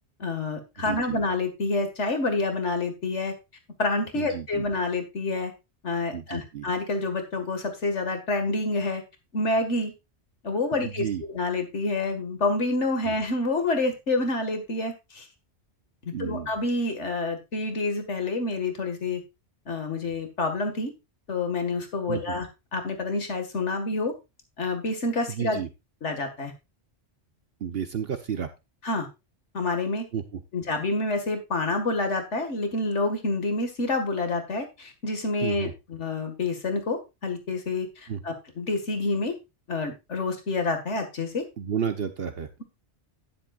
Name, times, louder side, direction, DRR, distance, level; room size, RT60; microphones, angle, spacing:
voice 1, 0.2-3.3 3.8-5.5 5.8-9.0 9.3-9.9 10.4-15.3 16.0-19.2 19.7-20.9 21.3-22.5 22.7-24.1 24.6-25.6 26.0-26.5 28.8-29.1 29.5-30.0 30.5-39.3 39.7-41.4, left 2 dB, 85° left, 6 dB, 2.2 m, -28 dB
voice 2, 0.8-1.2 4.1-4.6 6.1-6.7 10.7-11.2 13.0-13.1 16.1-16.5 22.1-22.4 25.3-25.7 27.6-28.5 30.1-30.4 35.4-35.7 38.1-38.2 41.6-42.5, right 8 dB, 60° right, 9 dB, 1.1 m, -32 dB
12.0 x 10.5 x 2.4 m, 0.25 s
omnidirectional pair, 1.2 m